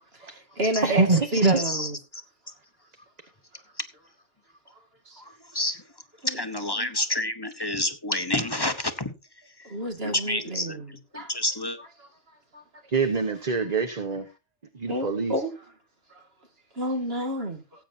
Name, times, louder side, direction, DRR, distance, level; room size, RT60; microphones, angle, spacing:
voice 1, 0.2-1.1 1.3-2.0 5.1-5.2 6.2-6.4 6.7-6.9 9.6-11.3 11.8-12.1 12.5-12.6 14.9-15.5 16.8-17.6, right 1 dB, 50° right, 2.4 m, -30 dB
voice 2, 0.8-1.6 12.9-14.3 14.7-15.4, right 3 dB, 35° right, 1.1 m, -24 dB
voice 3, 6.4-9.1 10.0-10.8 11.1-11.8, left 1 dB, 20° left, 0.9 m, -28 dB
18.5 x 8.9 x 2.7 m
omnidirectional pair, 1.3 m